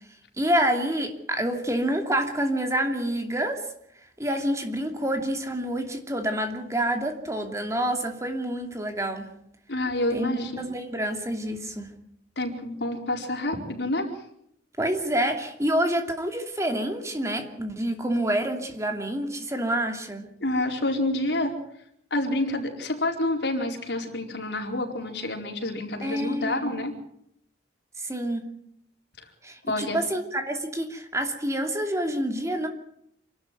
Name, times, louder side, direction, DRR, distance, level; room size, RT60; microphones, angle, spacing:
voice 1, 0.4-3.6 4.2-9.3 10.1-11.9 14.8-20.3 26.0-26.7 28.0-28.4 29.4-32.7, right 1 dB, 15° right, 5 dB, 2.7 m, -27 dB
voice 2, 9.7-10.5 12.4-14.1 20.4-21.5 22.1-26.9 29.7-30.0, left 1 dB, 70° left, 2 dB, 4.6 m, -28 dB
27.5 x 13.0 x 9.2 m, 0.73 s
head